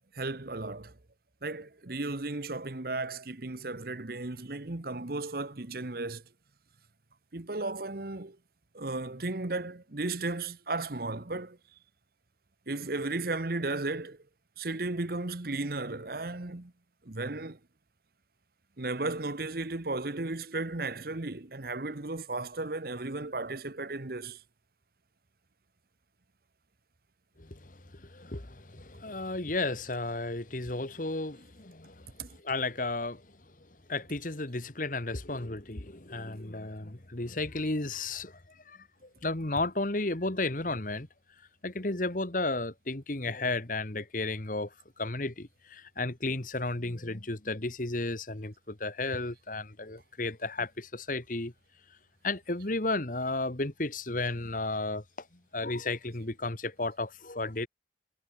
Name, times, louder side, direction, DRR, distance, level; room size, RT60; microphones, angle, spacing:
voice 1, 0.1-0.9 1.4-6.2 7.3-8.4 8.7-11.6 12.7-14.2 14.6-16.7 17.0-17.6 18.8-24.4 32.2-32.3, right 2 dB, 55° right, 1.2 m, -35 dB
voice 2, 27.4-33.2 33.9-38.4 38.7-41.1 41.6-51.5 52.2-55.3 55.5-57.7, left 2 dB, 45° left, 1.7 m, -33 dB
head